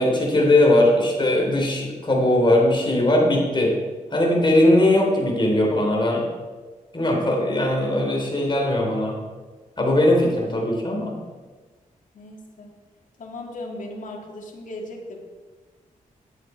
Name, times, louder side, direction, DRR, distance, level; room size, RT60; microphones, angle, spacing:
voice 1, 0.0-3.7 4.1-6.2 6.9-9.2 9.8-11.1, left 1 dB, 35° left, -1 dB, 3.5 m, -19 dB
voice 2, 12.1-12.7 13.2-15.2, left 1 dB, 65° left, 1 dB, 2.1 m, -37 dB
11.0 x 8.0 x 4.5 m, 1.4 s
cardioid pair, 75°, 14 cm